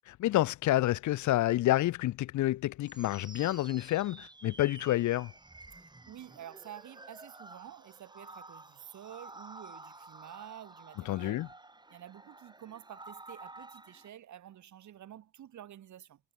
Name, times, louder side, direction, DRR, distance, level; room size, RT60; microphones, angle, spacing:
voice 1, 0.2-5.3 11.1-11.5, left 15 dB, 75° left, 0.7 m, -28 dB
sound 1, 2.8-14.1, right 2 dB, 15° right, 2.8 m, -51 dB
voice 2, 6.1-11.5 11.9-16.2, right 11 dB, 70° right, 7.4 m, -49 dB
cardioid pair, 90°, 30 cm